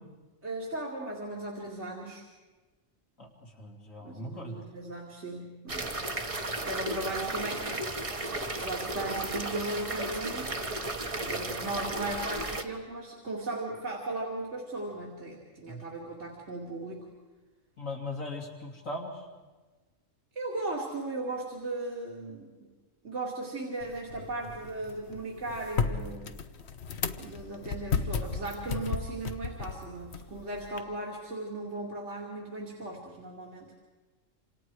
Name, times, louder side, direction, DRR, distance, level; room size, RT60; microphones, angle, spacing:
voice 1, 0.4-2.3 4.0-6.0 6.6-7.7 8.2-10.5 11.2-17.1 20.3-22.7 23.0-26.3 27.2-33.7, right 2 dB, 60° right, -3 dB, 3.0 m, -37 dB
voice 2, 3.2-4.5 15.7-15.8 17.8-19.2, left 2 dB, 85° left, 1 dB, 3.3 m, -39 dB
sound 1, 5.7-12.6, right 2 dB, 25° right, 1.3 m, -34 dB
sound 2, 23.8-30.8, left 5 dB, 60° left, 1.2 m, -35 dB
27.5 x 27.0 x 4.8 m, 1.3 s
omnidirectional pair, 1.3 m